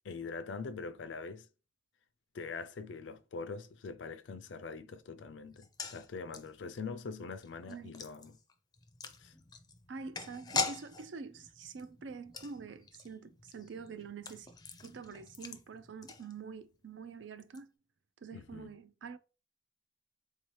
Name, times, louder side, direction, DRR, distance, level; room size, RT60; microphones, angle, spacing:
voice 1, 0.0-1.5 2.3-8.4 9.2-9.3 18.3-18.7, left 4 dB, 80° left, 0.4 m, -43 dB
sound 1, 5.5-16.8 17.0-17.1 17.4-17.6, left 4 dB, 20° left, 0.4 m, -43 dB
voice 2, 9.9-14.5 14.8-17.7 18.2-19.2, right 5 dB, 75° right, 0.4 m, -46 dB
3.8 x 2.7 x 3.1 m
head